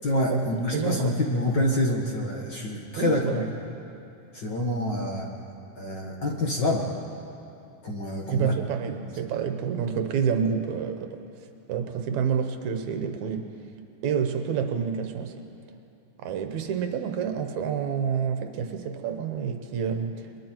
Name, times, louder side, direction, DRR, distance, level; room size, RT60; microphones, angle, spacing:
voice 1, 0.0-3.4 4.3-5.3 5.8-6.9 7.8-8.5 9.0-9.2, left 1 dB, 45° left, 0 dB, 1.8 m, -27 dB
voice 2, 0.7-1.1 3.0-3.5 8.3-11.2 11.7-13.5 14.0-15.5 16.2-20.4, right 7 dB, 75° right, 7 dB, 2.3 m, -28 dB
28.5 x 21.5 x 4.6 m, 2.7 s
omnidirectional pair, 3.5 m